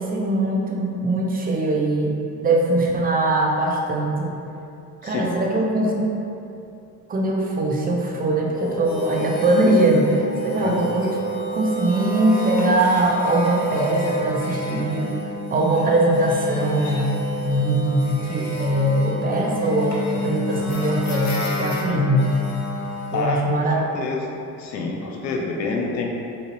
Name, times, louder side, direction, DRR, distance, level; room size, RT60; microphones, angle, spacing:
voice 1, 0.0-2.1 2.4-4.3 5.0-6.0 7.1-11.1 11.5-15.1 15.5-17.1 17.4-22.3 23.1-23.8, right 1 dB, 20° right, -1 dB, 0.6 m, -21 dB
sound 1, 8.5-23.2, equal, 35° left, 0.9 m, -29 dB
voice 2, 23.9-26.2, left 3 dB, 85° left, 0 dB, 0.6 m, -27 dB
3.9 x 3.9 x 2.6 m, 2.7 s
figure-of-eight pair, 45°, 49 cm